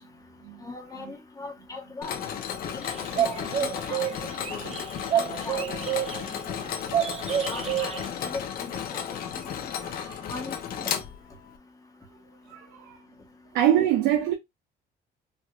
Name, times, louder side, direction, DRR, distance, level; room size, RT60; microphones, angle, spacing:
voice 1, 0.6-2.1 3.2-3.3 3.6-4.1 4.5-4.6 5.1-5.7 6.6-6.7 7.5-9.0 9.3-9.4 10.3-10.9, left 3 dB, 20° left, 1.0 m, -39 dB
Mechanisms, 2.0-11.6, left 8 dB, 60° left, 0.8 m, -34 dB
sound 1, 2.8-6.6 6.9-8.1, right 10 dB, 40° right, 0.5 m, -29 dB
voice 2, 9.8-10.2 12.5-13.0 13.5-14.3, right 11 dB, 90° right, 0.6 m, -26 dB
4.6 x 2.5 x 2.3 m
cardioid pair, 110°, 17 cm